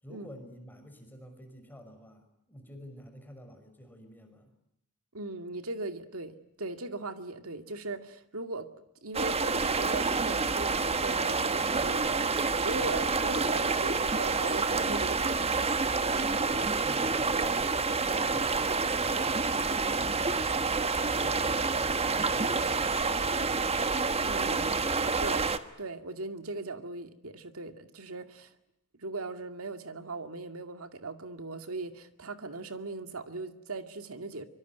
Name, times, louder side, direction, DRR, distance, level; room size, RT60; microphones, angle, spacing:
voice 1, 0.0-4.5 12.8-13.0 16.5-20.7 21.0-23.6, equal, 10° left, 5.7 m, -50 dB
voice 2, 5.1-8.7 9.0-15.7 24.2-25.5 25.8-28.5 29.0-34.4, right 2 dB, 70° right, 2.3 m, -39 dB
sound 1, 9.1-25.6, right 4 dB, 30° right, 1.4 m, -28 dB
25.5 x 24.5 x 9.4 m
head